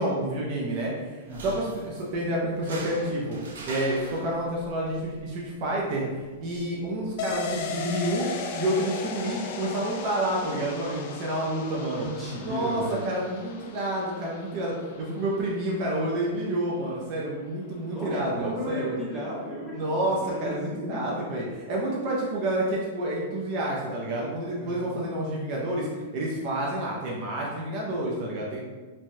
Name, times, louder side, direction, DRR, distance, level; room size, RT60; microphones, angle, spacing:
voice 1, 0.0-3.4 3.7-8.3 8.6-12.1 12.4-19.0 19.7-28.6, right 1 dB, 40° right, -4 dB, 0.5 m, -29 dB
sound 1, 1.2-8.2, right 2 dB, 80° right, 0.6 m, -44 dB
sound 2, 7.2-16.6 16.9-17.0, left 5 dB, 50° left, 0.3 m, -37 dB
voice 2, 11.9-13.0 17.9-20.6 20.9-21.2 24.6-24.9, left 1 dB, ahead, -8 dB, 0.8 m, -35 dB
3.1 x 2.2 x 2.6 m, 1.4 s
hypercardioid pair, 155°, 0 cm